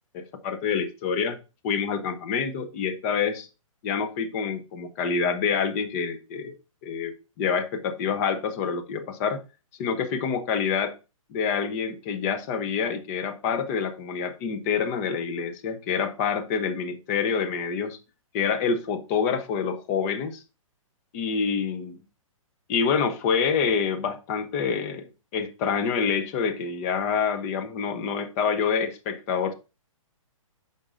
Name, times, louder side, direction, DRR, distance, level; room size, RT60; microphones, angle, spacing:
voice 1, 0.1-1.4 1.6-3.5 3.8-6.6 6.8-9.4 9.8-10.9 11.3-18.0 18.3-20.4 21.1-22.0 22.7-29.5, left 6 dB, 25° left, 0.7 m, -27 dB
8.6 x 5.4 x 2.5 m
hypercardioid pair, 155°, 18 cm